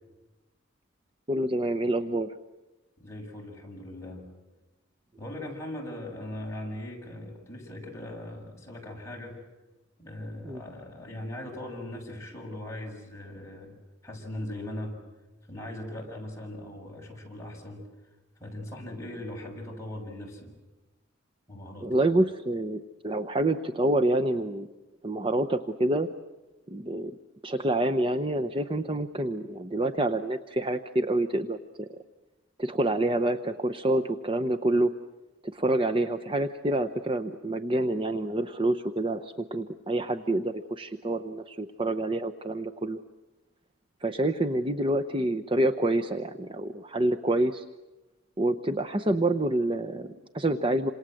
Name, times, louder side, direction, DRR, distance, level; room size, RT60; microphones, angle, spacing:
voice 1, 1.3-2.3 10.4-10.6 21.8-24.7 25.0-26.1 26.7-27.1 27.4-31.9 32.6-34.9 35.4-43.0 44.0-47.6 48.4-50.9, right 1 dB, 25° right, 7 dB, 0.8 m, -27 dB
voice 2, 3.0-4.3 5.2-9.4 10.0-13.8 14.0-14.9 15.5-17.9 18.4-20.5 21.5-21.9, left 1 dB, 15° left, -2 dB, 7.0 m, -39 dB
28.0 x 27.0 x 7.8 m, 1.1 s
head